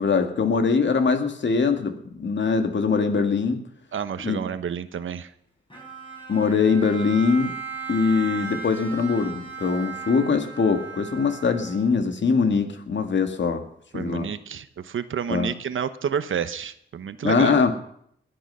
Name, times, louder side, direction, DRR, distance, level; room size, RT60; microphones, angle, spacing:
voice 1, 0.0-3.6 4.2-4.4 6.3-7.5 7.9-13.6 13.9-14.3 15.3-15.5 17.2-17.7, left 5 dB, 65° left, 6 dB, 2.0 m, -22 dB
voice 2, 3.9-5.3 13.9-17.5, right 7 dB, 80° right, 12 dB, 1.0 m, -30 dB
Bowed string instrument, 5.7-12.1, right 6 dB, 25° left, 5.8 m, -37 dB
20.5 x 9.2 x 5.6 m, 0.69 s
cardioid pair, 85°, 20 cm